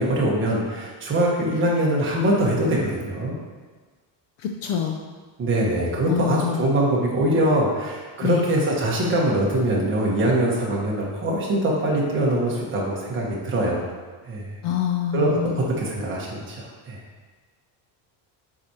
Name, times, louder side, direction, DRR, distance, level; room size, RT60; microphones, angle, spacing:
voice 1, 0.0-3.3 5.4-13.8 14.3-14.5 15.1-17.0, right 1 dB, 25° right, -4 dB, 1.2 m, -23 dB
voice 2, 4.4-5.0 6.1-6.6 8.2-8.4 14.6-15.7, left 9 dB, 65° left, 2 dB, 0.6 m, -26 dB
7.5 x 4.8 x 2.9 m, 1.4 s
cardioid pair, 170°, 48 cm